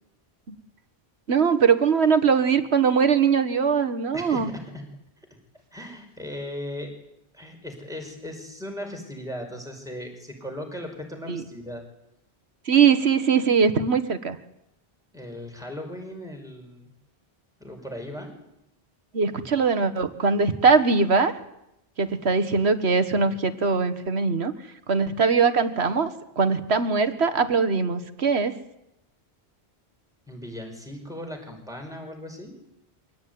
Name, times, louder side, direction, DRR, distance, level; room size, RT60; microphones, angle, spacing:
voice 1, 1.3-4.5 11.3-11.4 12.7-14.4 19.1-21.3 22.0-24.5 24.9-28.6, right 5 dB, 85° right, 11 dB, 1.8 m, -21 dB
voice 2, 4.1-4.8 5.7-6.9 7.3-11.8 15.1-16.9 17.6-18.4 30.3-32.6, left 1 dB, 5° right, 2 dB, 5.5 m, -37 dB
24.0 x 17.5 x 9.6 m, 0.86 s
omnidirectional pair, 1.1 m